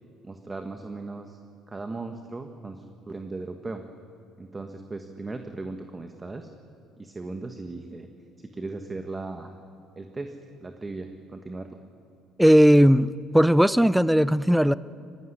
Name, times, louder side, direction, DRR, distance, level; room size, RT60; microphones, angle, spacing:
voice 1, 0.2-1.4 1.7-3.8 4.4-6.5 7.0-8.1 8.4-9.6 10.0-10.3 10.6-11.8, right 3 dB, 20° right, 6 dB, 1.4 m, -37 dB
voice 2, 12.4-14.7, equal, ahead, 17 dB, 0.6 m, -18 dB
23.0 x 15.5 x 9.9 m, 2.5 s
supercardioid pair, 90°, 0 cm